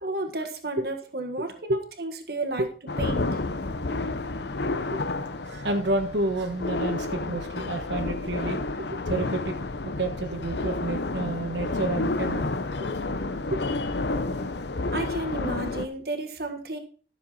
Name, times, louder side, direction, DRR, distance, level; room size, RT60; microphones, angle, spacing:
voice 1, 0.0-2.7 3.0-3.4 14.9-16.8, right 2 dB, 60° right, 4 dB, 1.7 m, -32 dB
sound 1, 2.9-15.8, left 2 dB, 70° left, 0.8 m, -30 dB
voice 2, 5.5-8.6 9.1-9.5 10.0-12.5 13.5-13.6, right 2 dB, 80° right, 3 dB, 1.4 m, -29 dB
13.5 x 7.0 x 4.2 m, 0.41 s
head